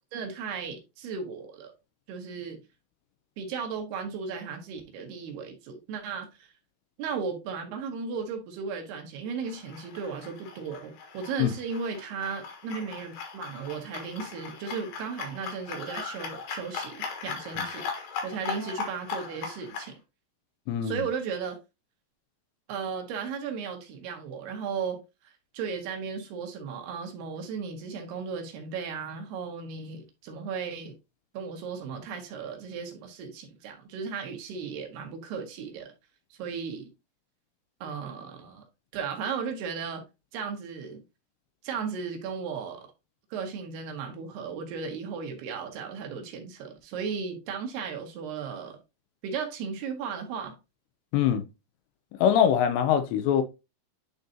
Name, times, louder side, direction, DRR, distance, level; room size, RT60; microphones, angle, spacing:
voice 1, 0.1-1.7 2.1-2.6 3.4-6.5 7.0-19.9 20.8-21.6 22.7-31.0 31.3-35.9 36.3-36.9 37.8-38.6 38.9-40.0 40.3-41.0 41.6-42.9 43.3-48.8 49.2-50.6, right 6 dB, 70° right, 3.2 m, -35 dB
sound 1, 9.4-19.9, left 5 dB, 65° left, 2.9 m, -38 dB
voice 2, 20.7-21.0 51.1-51.4 52.2-53.4, left 9 dB, 85° left, 3.0 m, -23 dB
10.5 x 4.0 x 2.8 m
omnidirectional pair, 5.0 m